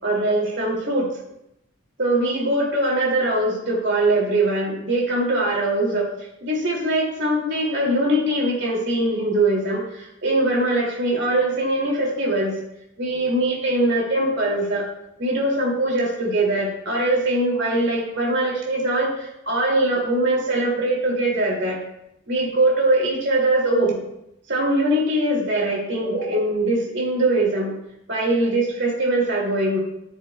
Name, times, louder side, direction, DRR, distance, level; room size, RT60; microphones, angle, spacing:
voice 1, 0.0-1.1 2.0-6.1 6.4-12.6 13.0-14.9 15.2-21.8 22.3-24.0 24.5-27.7 28.1-29.8, right 1 dB, 60° right, -2 dB, 2.4 m, -22 dB
13.0 x 7.2 x 2.2 m, 0.81 s
head